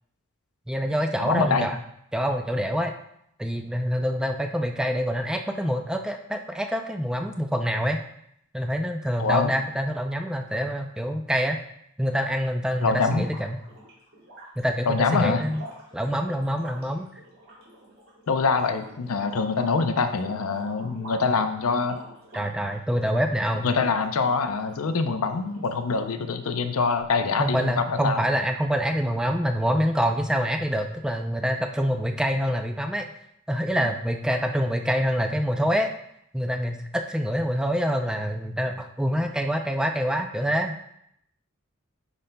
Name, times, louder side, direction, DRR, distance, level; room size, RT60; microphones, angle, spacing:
voice 1, 0.7-1.8 2.1-2.9 3.4-8.0 8.5-11.6 12.0-13.6 14.6-15.6 15.9-17.1 22.3-23.7 27.4-33.1 33.5-35.9 36.3-40.7, equal, 5° right, 4 dB, 0.4 m, -26 dB
voice 2, 1.2-1.7 9.2-9.5 12.8-13.3 14.9-15.4 18.3-22.0 23.6-28.2 33.8-33.9, left 4 dB, 85° left, 8 dB, 0.6 m, -24 dB
sound 1, 13.2-24.8 25.1-25.9, equal, 75° right, 2.7 m, -47 dB
9.7 x 5.1 x 2.2 m, 0.74 s
head